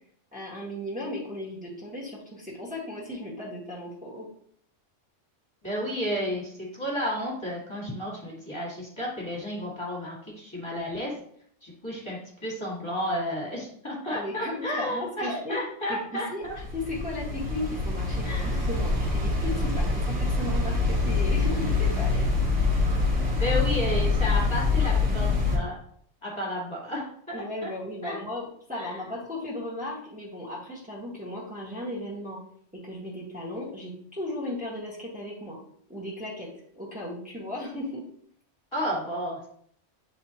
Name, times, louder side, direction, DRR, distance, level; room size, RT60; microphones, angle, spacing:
voice 1, 0.3-4.3 14.1-15.6 15.9-16.4 16.7-22.3 27.3-32.4 32.7-35.6 35.9-36.5 36.7-38.0, left 1 dB, 5° right, -6 dB, 1.6 m, -36 dB
voice 2, 5.6-11.1 11.6-16.3 18.2-18.7 23.4-25.8 26.2-27.1 27.6-27.7 28.0-28.2 28.7-29.0 38.7-39.5, equal, 25° left, -5 dB, 1.9 m, -32 dB
sound 1, 16.4-25.6, left 3 dB, 50° right, 2.5 m, -25 dB
9.0 x 3.7 x 2.9 m, 0.63 s
omnidirectional pair, 1.3 m